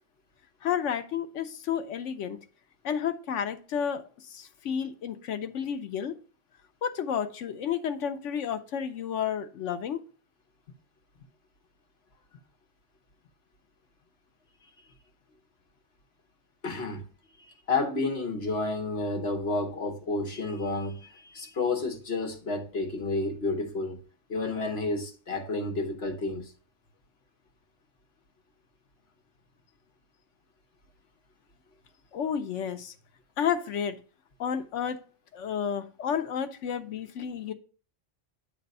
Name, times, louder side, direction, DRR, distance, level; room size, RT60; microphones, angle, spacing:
voice 1, 0.6-2.4 2.8-6.1 6.8-10.0 32.1-32.9 33.4-34.0 34.4-35.0 35.3-37.5, left 8 dB, 80° left, 1.1 m, -31 dB
voice 2, 16.6-17.1 17.4-24.0 24.3-26.5, left 3 dB, 55° left, 1.4 m, -31 dB
8.7 x 3.4 x 5.3 m
omnidirectional pair, 1.2 m